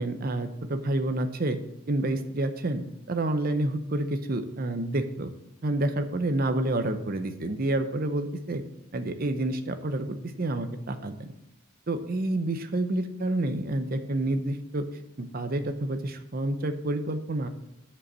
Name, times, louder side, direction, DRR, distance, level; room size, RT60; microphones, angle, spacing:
voice 1, 0.0-1.6 1.9-2.8 3.1-5.3 5.6-8.6 8.9-11.3 11.9-14.8 15.2-17.5, right 1 dB, 45° right, 9 dB, 0.7 m, -29 dB
7.0 x 5.4 x 6.1 m, 0.86 s
head